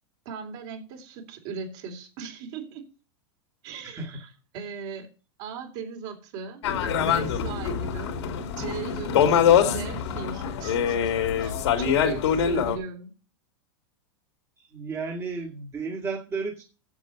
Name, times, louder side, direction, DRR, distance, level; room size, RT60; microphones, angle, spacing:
voice 1, 0.3-2.9 3.6-4.3 4.5-5.1 5.4-6.6 7.0-8.2 8.6-11.0 11.4-13.1, right 5 dB, 50° right, 3.3 m, -38 dB
voice 2, 3.8-4.2 14.6-16.6, right 4 dB, 20° right, 1.9 m, -33 dB
sound 1, 6.6-12.8, left 8 dB, 80° left, 2.9 m, -24 dB
8.2 x 7.4 x 6.7 m
supercardioid pair, 140°, 14 cm